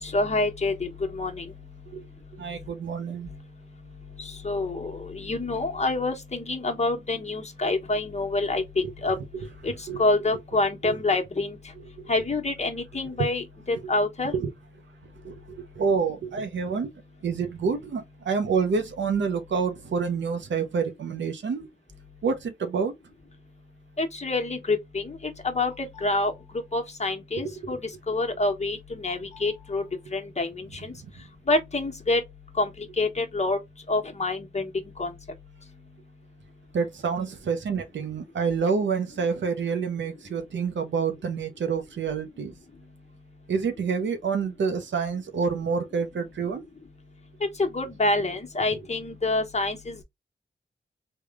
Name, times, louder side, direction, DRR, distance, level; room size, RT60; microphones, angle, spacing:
voice 1, 0.0-1.5 4.2-9.2 9.6-11.6 12.1-14.3 24.0-26.3 26.7-27.8 28.1-29.8 30.1-30.9 31.5-32.2 32.6-33.6 33.9-34.7 35.0-35.1 47.6-50.0, left 2 dB, 35° left, 1.0 m, -27 dB
voice 2, 2.4-3.3 9.9-10.0 10.8-11.0 13.8-13.9 14.3-14.5 15.2-16.9 17.2-21.7 22.2-22.9 36.7-42.5 43.5-46.6, right 5 dB, 85° right, 0.6 m, -28 dB
3.5 x 2.2 x 3.4 m
cardioid pair, 65°, 19 cm